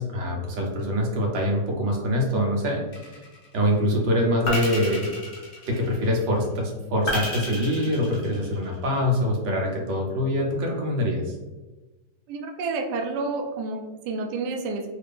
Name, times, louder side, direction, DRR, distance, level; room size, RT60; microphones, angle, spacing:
voice 1, 0.0-2.8 3.5-5.1 5.7-11.3, left 1 dB, 65° right, -1 dB, 1.4 m, -24 dB
sound 1, 2.9-3.5 4.5-6.1 7.1-8.8, left 1 dB, 50° left, 0.5 m, -31 dB
voice 2, 12.3-14.9, right 3 dB, 85° right, 3 dB, 0.9 m, -29 dB
3.3 x 2.7 x 3.4 m, 1.2 s
omnidirectional pair, 2.3 m